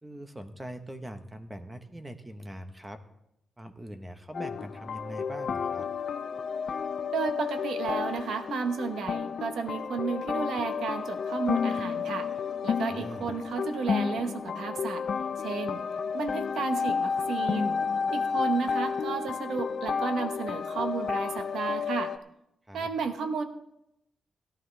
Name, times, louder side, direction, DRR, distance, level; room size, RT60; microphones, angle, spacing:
voice 1, 0.0-3.0 3.6-5.9 12.9-13.3 22.7-22.9, right 1 dB, 15° right, 8 dB, 1.0 m, -42 dB
sound 1, 4.3-22.2, left 6 dB, 55° left, 0.5 m, -31 dB
voice 2, 7.1-12.3 12.6-15.1 15.4-15.8 16.1-17.8 18.1-22.1 22.7-23.4, right 5 dB, 85° right, 7 dB, 1.1 m, -33 dB
17.5 x 11.5 x 3.3 m, 0.82 s
wide cardioid pair, 135°, 0 cm